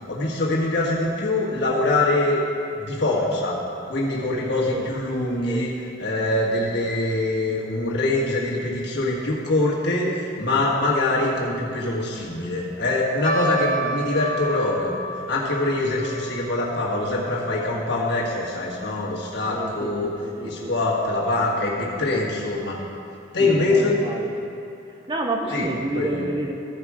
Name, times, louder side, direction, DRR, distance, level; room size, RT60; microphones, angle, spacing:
voice 1, 0.1-2.4 2.7-3.6 3.9-14.9 15.3-20.1 20.4-22.8 23.3-24.0 25.5-25.7 25.9-26.2, left 2 dB, 60° left, -4 dB, 1.6 m, -24 dB
sound 1, 13.2-19.7 20.0-20.1 20.8-21.1 21.7-21.8 22.2-22.3, right 2 dB, 40° left, 1.3 m, -32 dB
voice 2, 19.5-20.9 21.8-22.1 23.4-24.3 25.1-26.5, right 2 dB, 20° right, 2 dB, 0.6 m, -30 dB
14.0 x 5.1 x 4.8 m, 2.9 s
head